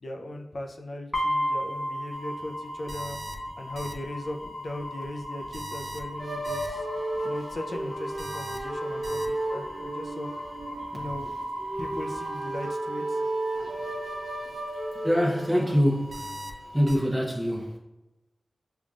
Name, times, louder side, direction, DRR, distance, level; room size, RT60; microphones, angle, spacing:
voice 1, 0.0-3.2 3.6-6.9 7.2-10.3 10.9-13.2 14.4-14.6 14.9-15.0, left 1 dB, 65° left, 0.4 m, -38 dB
sound 1, 1.1-13.1, equal, 30° left, 1.2 m, -36 dB
sound 2, 2.1-17.0, right 1 dB, 85° right, 0.4 m, -41 dB
sound 3, 6.2-15.7, right 1 dB, 40° right, 0.9 m, -34 dB
voice 2, 15.0-16.5 16.7-17.8, equal, 10° right, 0.8 m, -24 dB
5.3 x 2.3 x 2.4 m
cardioid pair, 55°, 0 cm